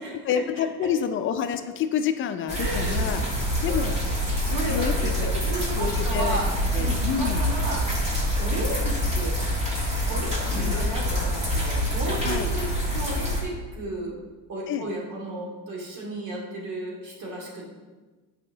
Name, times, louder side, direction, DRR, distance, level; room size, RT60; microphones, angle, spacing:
voice 1, 0.2-3.3 3.6-3.9 4.7-5.1 5.8-7.5 10.5-10.8 12.2-12.5 14.7-14.9, left 8 dB, 40° left, 9 dB, 0.5 m, -28 dB
sound 1, 2.5-13.4, equal, 20° right, 1.6 m, -26 dB
voice 2, 2.6-3.2 3.6-3.9 4.4-6.5 6.8-7.8 8.4-9.4 10.1-12.7 12.9-14.2 14.5-17.7, right 2 dB, 65° right, -3 dB, 2.4 m, -33 dB
8.9 x 5.0 x 3.8 m, 1.3 s
cardioid pair, 155°, 32 cm